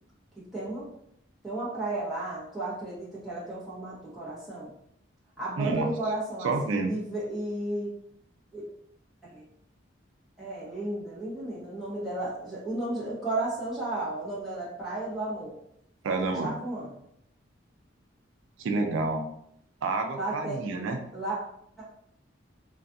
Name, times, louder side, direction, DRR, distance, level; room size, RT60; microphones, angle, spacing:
voice 1, 0.5-0.9 1.4-4.7 5.4-7.9 8.5-8.6 9.2-9.5 10.4-15.5 16.2-16.9 20.2-20.6 21.1-21.4 21.8-21.9, right 2 dB, ahead, -9 dB, 0.8 m, -33 dB
voice 2, 5.6-5.9 6.4-6.9 16.0-16.5 18.6-19.2 19.8-21.0, right 3 dB, 90° right, 4 dB, 0.4 m, -28 dB
2.3 x 2.3 x 2.6 m, 0.73 s
head